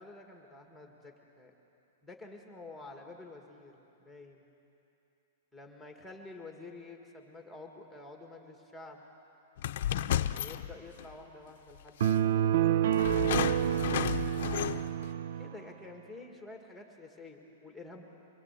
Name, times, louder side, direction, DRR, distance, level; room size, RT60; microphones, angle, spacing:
voice 1, 0.0-1.5 2.0-4.4 5.5-9.0 10.3-14.1 15.4-18.0, left 3 dB, ahead, 1 dB, 2.0 m, -49 dB
sound 1, 9.6-11.1 12.0-12.1 12.9-15.0, left 11 dB, 55° left, 0.7 m, -33 dB
sound 2, 12.0-15.6, right 11 dB, 60° right, 0.4 m, -28 dB
24.5 x 21.0 x 8.4 m, 2.8 s
hypercardioid pair, 165°, 0 cm